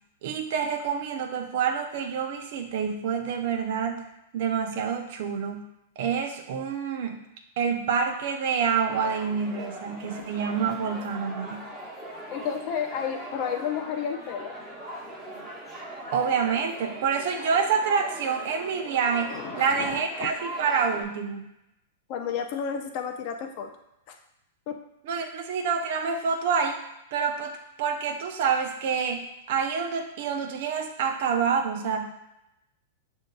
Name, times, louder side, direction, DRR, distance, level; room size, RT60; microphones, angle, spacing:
voice 1, 0.2-4.0 4.3-5.7 6.0-7.2 7.6-11.7 16.1-21.4 25.0-26.8 27.1-32.1, right 6 dB, 60° right, 4 dB, 0.6 m, -27 dB
sound 1, 8.9-21.0, right 1 dB, 10° right, 1.0 m, -40 dB
voice 2, 12.3-14.6 19.3-20.3 22.1-23.7 24.1-24.2 24.7-24.8, left 7 dB, 50° left, 5 dB, 0.5 m, -32 dB
6.3 x 2.6 x 2.3 m, 0.86 s
hypercardioid pair, 110°, 0 cm